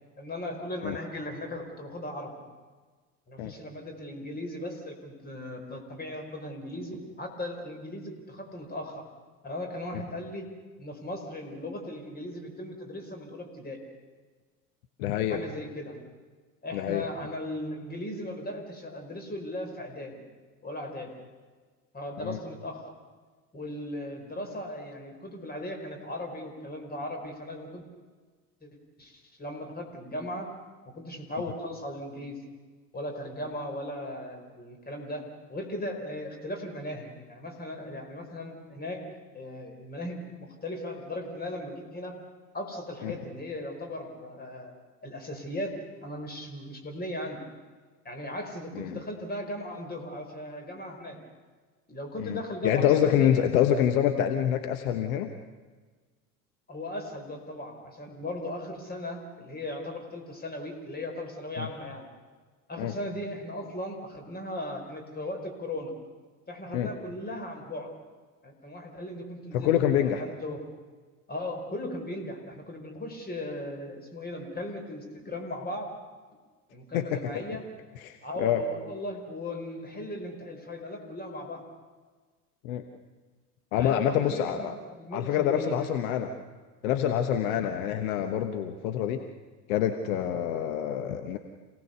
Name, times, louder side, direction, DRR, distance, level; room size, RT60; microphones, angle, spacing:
voice 1, 0.2-2.3 3.3-9.0 9.4-10.5 10.8-13.8 15.3-16.0 16.6-20.2 20.6-21.1 21.9-22.9 23.5-27.8 28.6-28.7 29.0-30.5 30.9-32.4 32.9-35.2 35.5-39.0 39.3-42.1 42.5-44.7 45.0-45.7 46.0-47.4 48.0-51.2 51.9-53.5 56.7-62.1 62.7-65.9 66.5-67.9 68.4-70.6 71.3-75.9 76.7-77.6 78.2-81.6 83.7-85.9, left 1 dB, 20° left, 4 dB, 4.7 m, -37 dB
voice 2, 15.0-15.4 16.7-17.0 22.2-22.4 43.0-43.1 48.7-49.0 52.2-55.3 61.6-61.7 62.8-62.9 66.7-66.9 69.5-70.2 76.9-77.4 78.0-78.6 82.6-82.8 83.7-84.7 85.1-86.3 86.8-89.3 89.7-91.4, left 10 dB, 60° left, 7 dB, 1.3 m, -26 dB
27.5 x 18.0 x 6.8 m, 1.4 s
figure-of-eight pair, 75°, 48 cm